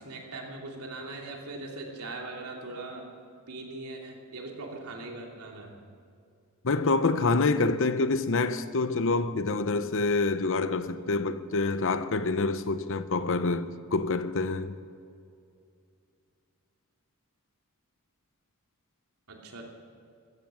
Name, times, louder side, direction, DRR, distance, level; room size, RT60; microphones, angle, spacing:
voice 1, 0.0-3.0 3.5-5.8 19.3-19.7, right 2 dB, 85° right, 2.9 m, -40 dB
voice 2, 6.6-14.7, left 3 dB, 60° left, 0.8 m, -27 dB
15.0 x 14.5 x 6.3 m
head